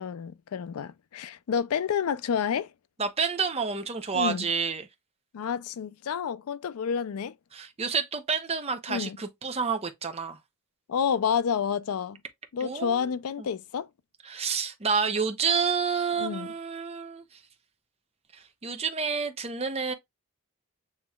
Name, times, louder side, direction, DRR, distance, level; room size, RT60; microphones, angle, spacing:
voice 1, 0.0-2.7 4.1-4.5 5.3-7.3 8.9-9.2 10.9-12.2 12.5-13.9 16.2-16.5, left 7 dB, 75° left, 0.4 m, -29 dB
voice 2, 3.0-4.8 7.5-10.4 12.6-13.0 13.4-13.5 14.2-17.2 18.3-19.9, right 5 dB, 25° right, 0.7 m, -29 dB
7.1 x 3.1 x 2.3 m
head